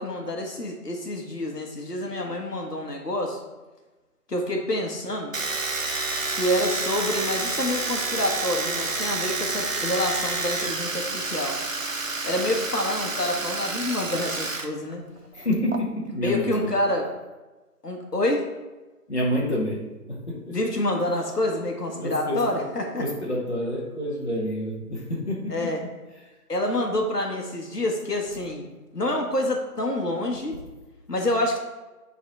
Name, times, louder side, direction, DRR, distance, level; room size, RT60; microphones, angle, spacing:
voice 1, 0.0-3.4 4.3-5.3 6.3-11.6 12.2-15.0 16.2-17.1 17.8-18.4 20.5-23.0 25.5-25.8 26.5-30.6 31.1-31.6, left 1 dB, 85° left, 1 dB, 1.4 m, -27 dB
Domestic sounds home sounds, 5.3-14.7 14.9-15.8, right 3 dB, 55° right, 0.7 m, -29 dB
voice 2, 15.3-16.7 19.1-20.6 21.9-22.6 23.0-25.7, equal, 45° left, -3 dB, 1.4 m, -28 dB
7.6 x 4.1 x 4.1 m, 1.2 s
figure-of-eight pair, 170°, 46 cm